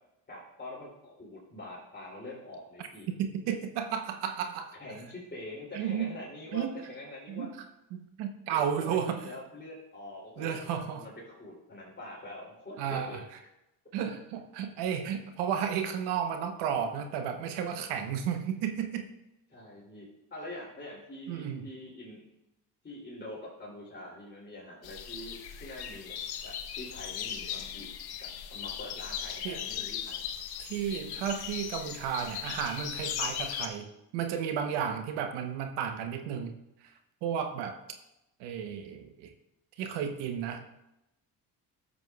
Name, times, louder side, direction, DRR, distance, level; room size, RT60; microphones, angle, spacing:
voice 1, 0.3-3.1 4.4-4.5 4.8-7.5 8.5-13.2 19.5-22.2 22.8-26.1 26.4-27.9 28.5-30.2, left 1 dB, 25° left, -5 dB, 2.9 m, -45 dB
voice 2, 3.2-4.7 5.7-6.2 6.5-6.7 7.3-7.5 7.9-9.2 10.4-11.0 12.8-13.2 13.9-19.1 21.3-21.7 29.4-29.6 30.6-36.5 37.2-37.8 38.4-39.3 39.8-40.6, right 8 dB, 85° right, 6 dB, 0.9 m, -33 dB
sound 1, 24.8-33.7, left 9 dB, 70° left, 0.9 m, -38 dB
11.0 x 7.4 x 2.3 m, 0.88 s
supercardioid pair, 75°, 40 cm